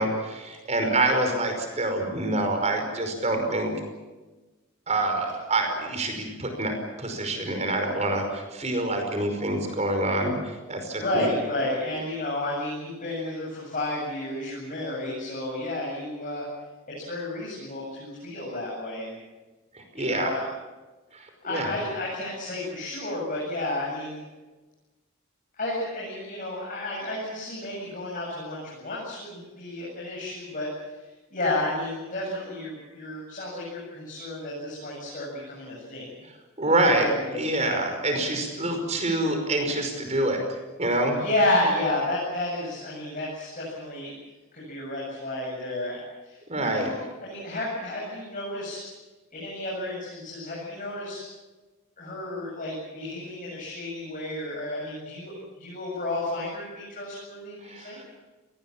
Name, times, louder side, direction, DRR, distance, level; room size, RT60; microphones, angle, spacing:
voice 1, 0.0-3.7 4.9-11.3 19.9-20.3 21.1-21.7 36.6-37.1 37.4-40.4 40.8-41.2 46.5-46.9 57.6-58.0, right 2 dB, 35° right, 5 dB, 5.3 m, -26 dB
voice 2, 0.8-1.3 10.9-16.4 17.0-19.2 19.9-20.4 21.4-24.2 25.5-30.7 31.3-36.1 36.7-37.9 41.1-44.2 44.5-48.8 49.3-51.2 52.0-58.0, left 1 dB, 40° left, -4 dB, 8.0 m, -31 dB
29.5 x 19.0 x 7.4 m, 1.2 s
head